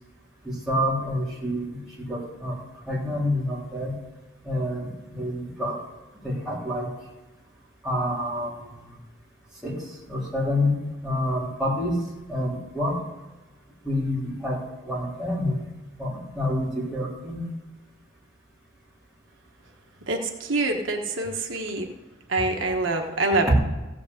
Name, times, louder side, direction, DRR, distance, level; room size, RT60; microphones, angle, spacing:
voice 1, 0.4-2.6 2.9-4.0 4.4-5.8 6.2-6.9 7.8-8.7 9.6-10.8 11.0-12.0 12.3-13.0 13.8-15.7 16.0-17.5 23.5-23.6, left 1 dB, 5° right, -8 dB, 3.5 m, -28 dB
voice 2, 20.1-21.9 22.3-23.5, right 2 dB, 80° right, 3 dB, 1.2 m, -25 dB
15.0 x 5.1 x 8.1 m, 1.1 s
head